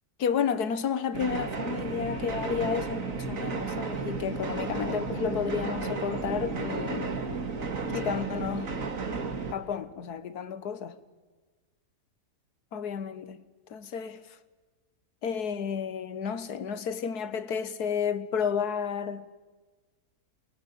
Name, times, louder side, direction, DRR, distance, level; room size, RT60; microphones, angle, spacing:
voice 1, 0.2-7.2 7.9-8.8 9.5-11.0 12.7-13.4 13.7-14.4 15.2-19.3, left 7 dB, 85° left, 1.7 m, -31 dB
sound 1, 1.1-9.5, right 4 dB, 60° right, 2.3 m, -33 dB
28.0 x 22.0 x 8.4 m
omnidirectional pair, 1.6 m